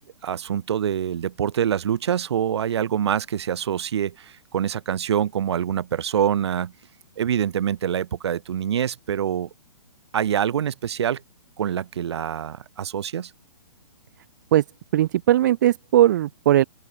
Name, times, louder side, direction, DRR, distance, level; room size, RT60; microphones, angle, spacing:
voice 1, 0.2-6.7 7.2-9.5 10.1-11.2 11.6-13.3, right 9 dB, 55° right, 4.6 m, -25 dB
voice 2, 14.9-16.6, right 13 dB, 35° right, 0.9 m, -18 dB
open air
hypercardioid pair, 165°, 17 cm